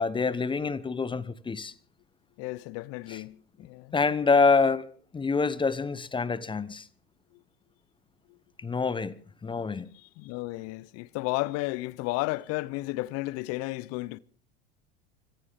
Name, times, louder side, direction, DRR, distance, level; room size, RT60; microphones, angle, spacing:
voice 1, 0.0-1.7 3.1-3.2 3.9-4.9 5.1-6.9 8.6-9.1 9.4-9.9, left 4 dB, 15° left, 0.9 m, -26 dB
voice 2, 2.4-3.9 10.2-14.2, left 20 dB, 50° left, 0.7 m, -33 dB
24.5 x 16.0 x 3.6 m
hypercardioid pair, 85°, 33 cm